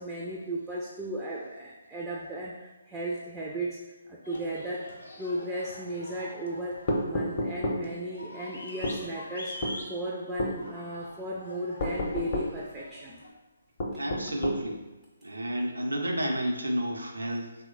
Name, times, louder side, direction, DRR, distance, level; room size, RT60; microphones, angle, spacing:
voice 1, 0.0-4.9 5.2-13.2 13.9-14.0, right 1 dB, 10° right, -4 dB, 0.3 m, -36 dB
sound 1, 4.2-13.3, left 1 dB, 80° left, 0.7 m, -45 dB
sound 2, 6.9-7.8 8.8-9.0 9.6-9.8 10.4-10.6 11.8-12.5 13.8-14.6, left 1 dB, 35° left, 0.6 m, -30 dB
voice 2, 14.0-14.8 15.2-17.5, equal, 80° right, 2 dB, 0.5 m, -30 dB
3.0 x 2.1 x 3.7 m, 1.1 s
figure-of-eight pair, 140°, 0 cm